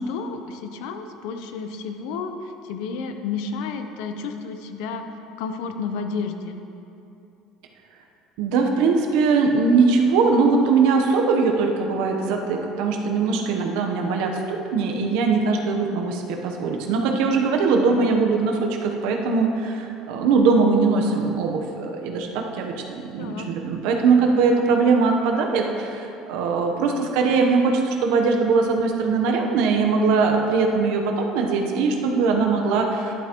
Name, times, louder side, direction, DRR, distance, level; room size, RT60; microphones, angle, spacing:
voice 1, 0.1-5.1 5.4-6.6 23.2-23.5, left 5 dB, 75° left, 7 dB, 0.7 m, -31 dB
voice 2, 8.4-33.1, right 4 dB, 75° right, 2 dB, 0.9 m, -21 dB
11.0 x 8.4 x 3.0 m, 2.8 s
cardioid pair, 160°, 0 cm